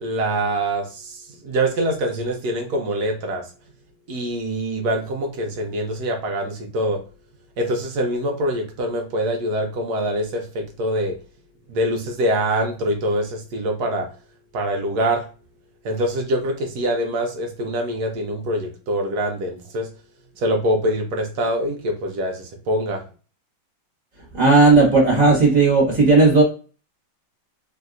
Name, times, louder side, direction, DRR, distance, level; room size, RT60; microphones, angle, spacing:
voice 1, 0.0-3.4 4.1-7.0 7.6-11.2 11.7-14.1 14.5-15.2 15.8-19.9 20.4-23.0, right 1 dB, 70° right, 3 dB, 0.9 m, -24 dB
voice 2, 24.3-26.4, right 3 dB, 25° right, -4 dB, 1.2 m, -14 dB
3.2 x 2.7 x 2.4 m, 0.36 s
omnidirectional pair, 2.2 m